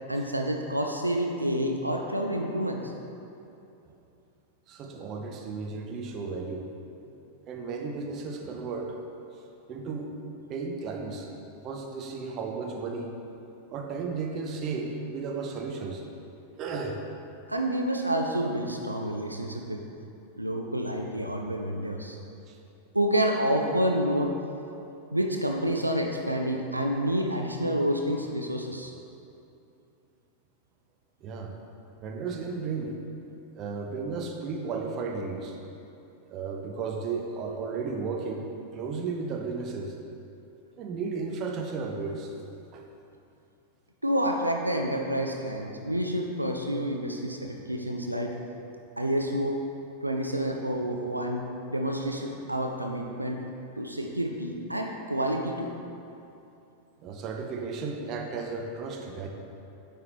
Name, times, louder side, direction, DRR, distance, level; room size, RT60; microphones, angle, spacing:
voice 1, 0.1-2.9 17.5-19.8 20.4-22.2 22.9-24.4 25.1-28.9 44.0-48.4 49.0-49.6 50.0-53.4 53.8-55.7, equal, 85° right, 2 dB, 0.3 m, -28 dB
voice 2, 4.7-6.7 7.5-9.0 9.7-10.1 10.5-11.3 11.6-13.1 13.7-16.0 16.6-17.0 22.5-22.6 31.2-31.5 32.0-32.9 33.5-35.6 36.3-38.5 38.7-39.9 40.8-42.3 42.7-42.8 57.0-59.3, right 4 dB, 35° right, 2 dB, 0.6 m, -34 dB
9.3 x 3.4 x 3.0 m, 2.8 s
figure-of-eight pair, 90°, 0 cm